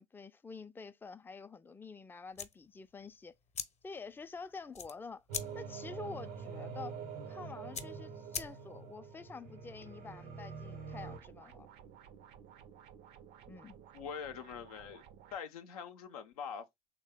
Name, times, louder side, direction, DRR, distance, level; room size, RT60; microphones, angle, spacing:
voice 1, 0.0-3.3 3.8-5.2 5.5-7.0 7.3-11.7 13.5-13.8, left 4 dB, 10° left, 0.3 m, -48 dB
sound 1, 2.3-9.0, left 6 dB, 35° left, 0.7 m, -46 dB
sound 2, 5.3-11.2, right 5 dB, 85° right, 0.9 m, -45 dB
sound 3, 11.0-15.4, right 8 dB, 65° right, 0.5 m, -56 dB
voice 2, 13.9-15.0 15.3-16.7, left 7 dB, 90° left, 0.5 m, -43 dB
3.2 x 2.1 x 3.5 m
hypercardioid pair, 55°, 19 cm